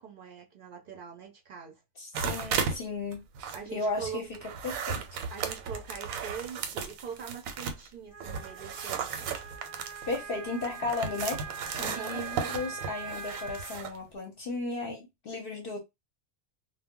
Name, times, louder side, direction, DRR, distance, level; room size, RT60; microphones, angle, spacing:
voice 1, 0.0-1.8 3.5-4.3 5.3-9.3 11.8-12.3, right 7 dB, 60° right, 0.5 m, -42 dB
voice 2, 2.0-3.2 3.7-4.4 4.6-5.2 10.1-11.4 11.8-15.8, left 3 dB, 55° left, 0.7 m, -35 dB
sound 1, 2.1-2.8 3.1-7.9 8.2-14.0, right 6 dB, 90° right, 1.0 m, -35 dB
Wind instrument woodwind instrument, 8.1-13.8, right 5 dB, 10° left, 0.5 m, -42 dB
2.2 x 2.0 x 3.5 m
omnidirectional pair, 1.4 m